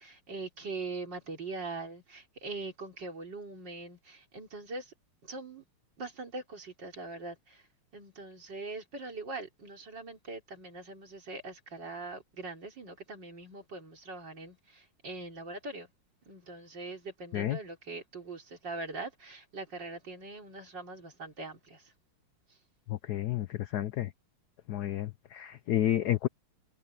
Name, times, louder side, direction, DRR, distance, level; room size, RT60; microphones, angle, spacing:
voice 1, 0.0-4.9 5.2-5.6 6.0-7.6 7.9-15.9 16.3-21.9, right 3 dB, 55° right, 4.2 m, -42 dB
voice 2, 22.9-24.1 24.7-26.3, left 12 dB, 75° left, 0.9 m, -31 dB
omnidirectional pair, 2.4 m